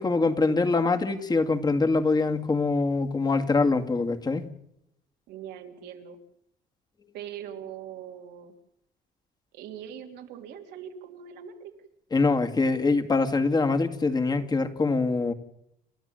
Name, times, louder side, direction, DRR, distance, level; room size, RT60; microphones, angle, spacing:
voice 1, 0.0-4.4 12.1-15.3, left 3 dB, 25° left, 7 dB, 2.1 m, -24 dB
voice 2, 5.3-6.2 7.1-8.5 9.5-11.7, right 9 dB, 85° right, 4 dB, 3.3 m, -41 dB
29.0 x 12.5 x 9.0 m, 0.80 s
cardioid pair, 110°, 17 cm